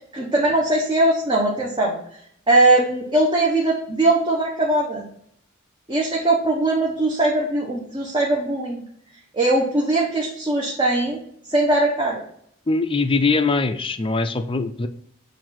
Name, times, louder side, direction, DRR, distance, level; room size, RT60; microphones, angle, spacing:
voice 1, 0.1-2.0 2.5-5.0 5.9-8.8 9.3-11.2 11.5-12.2, right 2 dB, 25° right, -3 dB, 1.1 m, -20 dB
voice 2, 12.7-14.9, left 3 dB, 25° left, 9 dB, 0.5 m, -22 dB
7.4 x 2.7 x 5.7 m, 0.66 s
head